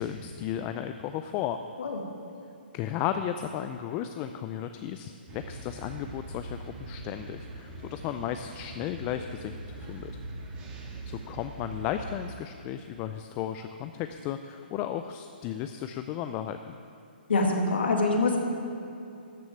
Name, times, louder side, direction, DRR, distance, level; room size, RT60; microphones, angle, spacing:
voice 1, 0.0-1.6 2.7-10.2 11.1-16.7, left 10 dB, 25° left, 8 dB, 0.4 m, -34 dB
sound 1, 5.3-12.3, right 2 dB, 20° right, 1.7 m, -42 dB
voice 2, 17.3-18.4, left 3 dB, 80° left, 1 dB, 2.3 m, -25 dB
13.0 x 6.3 x 8.7 m, 2.6 s
hypercardioid pair, 150°, 6 cm